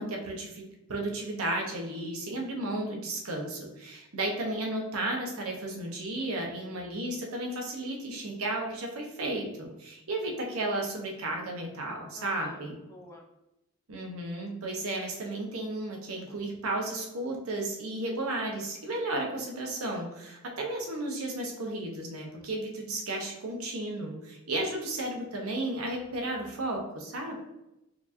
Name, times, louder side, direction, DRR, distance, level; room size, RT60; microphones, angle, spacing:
voice 1, 0.0-12.8 13.9-27.3, right 1 dB, 85° right, 0 dB, 0.9 m, -33 dB
voice 2, 12.1-13.3, left 1 dB, 15° left, -1 dB, 0.6 m, -50 dB
4.4 x 2.8 x 2.6 m, 0.90 s
head